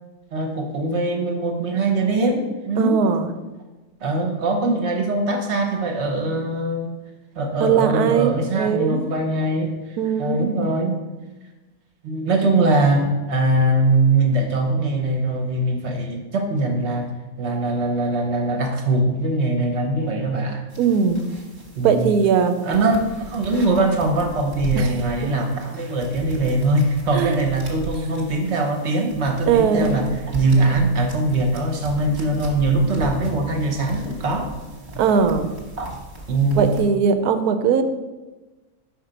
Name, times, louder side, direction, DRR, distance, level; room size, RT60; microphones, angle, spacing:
voice 1, 0.3-3.0 4.0-6.9 7.4-11.0 12.0-17.1 17.4-20.6 21.7-22.1 22.6-34.5 35.8-36.0 36.3-36.7, right 2 dB, 50° right, 2 dB, 1.1 m, -22 dB
voice 2, 2.8-3.3 7.6-9.0 10.0-10.5 20.8-21.2 21.8-22.5 24.7-24.9 25.2-25.3 27.1-27.4 29.5-30.0 35.0-35.5 36.6-37.8, right 6 dB, 85° right, 9 dB, 1.1 m, -19 dB
sound 1, 20.7-36.8, equal, 35° right, 1.3 m, -37 dB
5.4 x 4.3 x 5.1 m, 1.2 s
omnidirectional pair, 1.6 m